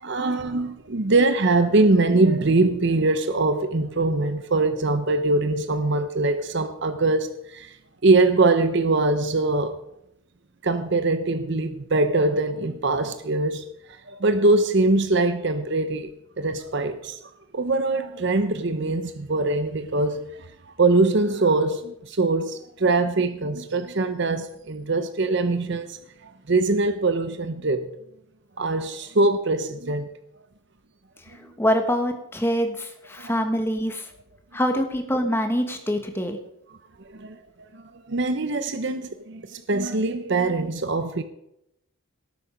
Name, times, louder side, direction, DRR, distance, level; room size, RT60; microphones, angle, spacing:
voice 1, 0.0-7.8 8.0-9.8 10.6-13.7 14.1-16.1 16.4-17.2 17.5-27.9 28.6-30.1 33.2-33.4 37.0-37.4 37.7-41.2, right 2 dB, 55° right, 0.8 m, -23 dB
voice 2, 31.3-34.1 34.5-36.4, equal, 10° left, 1.4 m, -25 dB
18.0 x 8.3 x 5.2 m
head